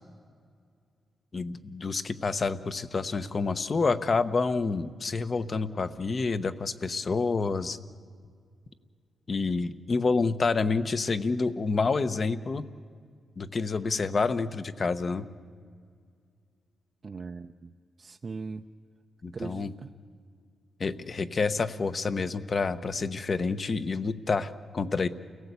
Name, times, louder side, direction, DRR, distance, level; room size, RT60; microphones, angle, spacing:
voice 1, 1.3-7.8 9.3-12.6 13.4-15.3 19.2-19.7 20.8-25.1, left 4 dB, 40° left, 12 dB, 0.9 m, -28 dB
voice 2, 17.0-18.6 19.3-19.9, right 4 dB, 35° right, 5 dB, 0.6 m, -40 dB
29.5 x 17.5 x 8.3 m, 2.1 s
wide cardioid pair, 130°, 0 cm